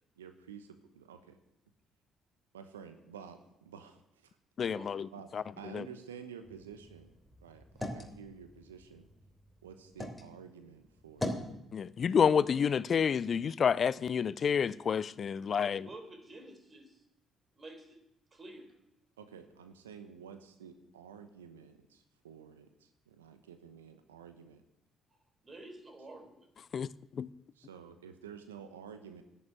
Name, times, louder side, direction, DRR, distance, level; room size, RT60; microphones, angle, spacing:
voice 1, 0.2-1.4 2.5-4.4 4.7-4.8 5.1-7.1 7.4-9.1 9.6-11.3 19.2-24.6 27.5-29.2, right 7 dB, 85° right, 1.0 m, -51 dB
voice 2, 4.6-5.1 5.3-5.4 5.7-5.8 11.7-15.9 26.7-26.9 27.2-27.3, left 7 dB, 50° left, 0.5 m, -29 dB
sound 1, 6.4-10.3 10.7-11.5, left 1 dB, 5° left, 3.2 m, -42 dB
voice 3, 15.7-17.0 17.6-18.0 18.3-18.7 25.4-26.4, right 2 dB, 35° right, 3.8 m, -49 dB
10.5 x 9.2 x 9.3 m
hypercardioid pair, 50°, 0 cm